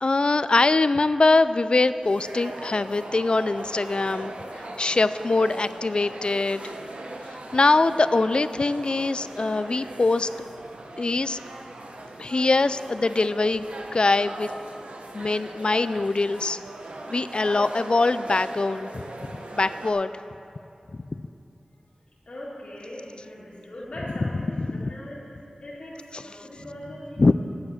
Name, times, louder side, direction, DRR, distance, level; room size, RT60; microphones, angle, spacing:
voice 1, 0.0-6.7 7.3-10.3 11.0-11.4 12.2-14.5 15.1-16.6 17.1-20.1 24.2-24.9 26.1-26.2 27.2-27.3, left 3 dB, 50° left, 14 dB, 0.3 m, -23 dB
sound 1, 2.0-19.9, right 2 dB, 85° right, 0.9 m, -39 dB
voice 2, 22.3-27.3, left 1 dB, 70° left, -8 dB, 2.1 m, -40 dB
8.7 x 7.2 x 7.7 m, 2.8 s
wide cardioid pair, 60°, 2 cm